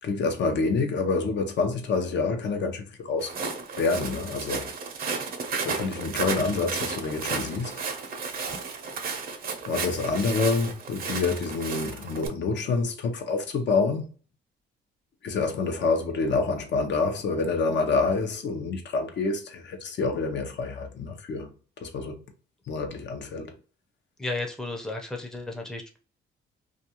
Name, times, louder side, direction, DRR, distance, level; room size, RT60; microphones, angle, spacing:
voice 1, 0.0-3.3 3.8-4.7 5.6-7.7 9.7-14.0 15.2-21.5 21.8-22.2 22.7-23.6, left 4 dB, 65° left, 0.7 m, -27 dB
Walk footsteps, 3.2-12.3, right 4 dB, 50° right, 0.6 m, -33 dB
voice 2, 24.2-26.0, left 2 dB, 5° left, 0.6 m, -33 dB
2.4 x 2.3 x 2.8 m
cardioid pair, 90°, 20 cm